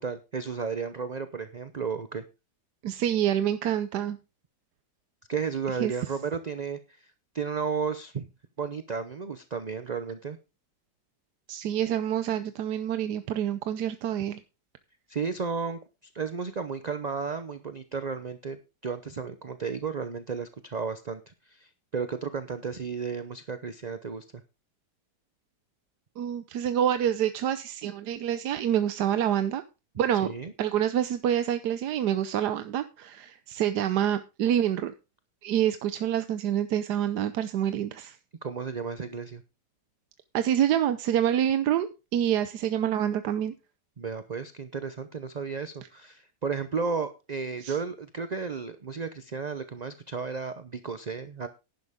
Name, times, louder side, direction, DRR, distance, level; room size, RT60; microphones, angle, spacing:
voice 1, 0.0-2.2 5.3-8.3 8.6-10.4 15.1-15.8 16.1-24.4 30.2-30.5 38.4-39.4 44.0-51.5, right 5 dB, 40° right, 10 dB, 0.6 m, -33 dB
voice 2, 2.8-4.2 5.8-5.9 11.5-14.4 26.2-29.6 30.0-30.3 30.6-34.9 35.4-38.2 40.3-43.5 47.6-47.8, right 10 dB, 80° right, 11 dB, 1.3 m, -27 dB
11.0 x 10.5 x 3.6 m, 0.29 s
omnidirectional pair, 1.8 m